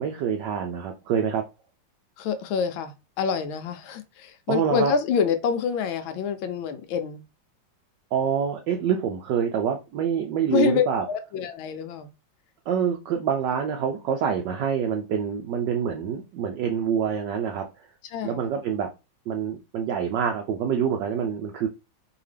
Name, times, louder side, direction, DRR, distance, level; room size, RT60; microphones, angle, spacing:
voice 1, 0.0-1.4 4.5-4.9 8.1-11.0 12.7-17.6 18.2-18.9 19.3-21.7, right 8 dB, 70° right, 1.1 m, -26 dB
voice 2, 2.2-7.2 10.5-12.1 18.1-18.4, left 7 dB, 80° left, 1.3 m, -27 dB
4.8 x 2.8 x 3.3 m
omnidirectional pair, 2.3 m